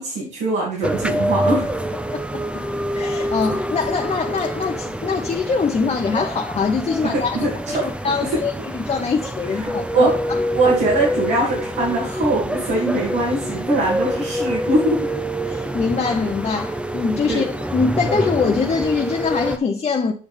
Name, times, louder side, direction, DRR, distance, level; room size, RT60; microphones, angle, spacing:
voice 1, 0.0-1.7 7.1-8.4 9.5-10.2 10.5-15.1 17.3-17.5, right 2 dB, 85° right, 2.4 m, -22 dB
sound 1, 0.8-19.6, equal, 5° right, 0.7 m, -26 dB
voice 2, 2.9-10.4 15.5-20.1, left 5 dB, 40° left, 0.8 m, -23 dB
7.1 x 6.2 x 3.4 m
supercardioid pair, 60°, 17 cm